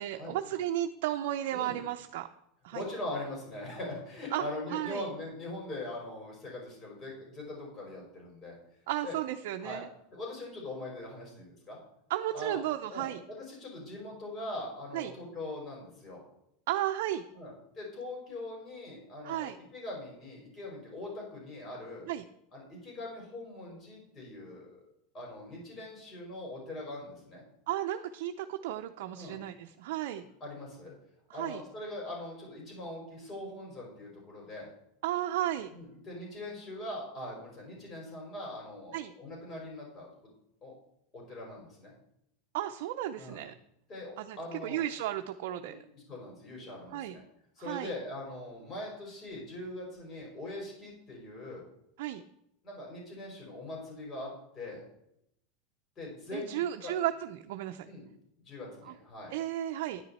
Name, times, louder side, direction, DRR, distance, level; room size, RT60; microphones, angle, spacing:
voice 1, 0.0-2.3 2.6-2.8 4.3-4.4 4.7-5.1 8.9-9.9 12.1-13.2 14.9-15.1 16.7-17.2 19.2-19.6 22.1-22.2 27.7-30.2 31.3-31.6 35.0-35.7 38.9-39.1 42.5-43.5 44.2-45.8 46.9-47.2 47.6-47.9 52.0-52.2 56.3-57.9 58.8-58.9 59.3-60.0, right 13 dB, 70° right, 5 dB, 0.6 m, -34 dB
voice 2, 2.7-8.6 9.0-9.2 9.6-9.8 10.1-11.8 12.3-12.6 12.9-16.2 17.3-22.1 22.5-24.9 25.1-27.4 29.1-29.4 30.4-30.9 31.3-34.7 35.7-40.1 40.6-40.7 41.1-41.9 43.2-43.4 43.9-44.8 45.6-47.2 47.6-51.6 52.6-54.8 56.0-56.9 57.8-58.0 58.4-59.3, left 1 dB, 25° left, -2 dB, 5.0 m, -42 dB
10.0 x 9.8 x 4.3 m, 0.78 s
supercardioid pair, 140°, 0 cm